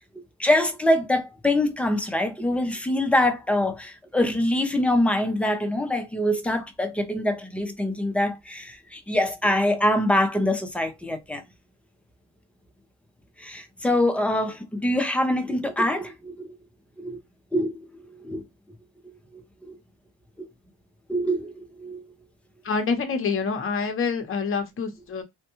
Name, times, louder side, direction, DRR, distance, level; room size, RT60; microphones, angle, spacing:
voice 1, 0.4-11.4 13.4-16.6 17.0-17.2 17.5-17.7 18.1-18.4 19.0-19.8 20.4-20.5 21.1-22.0, left 1 dB, 5° left, 0.4 m, -24 dB
voice 2, 22.6-25.2, left 5 dB, 30° left, 0.7 m, -26 dB
3.5 x 2.1 x 2.9 m
cardioid pair, 140°, 42 cm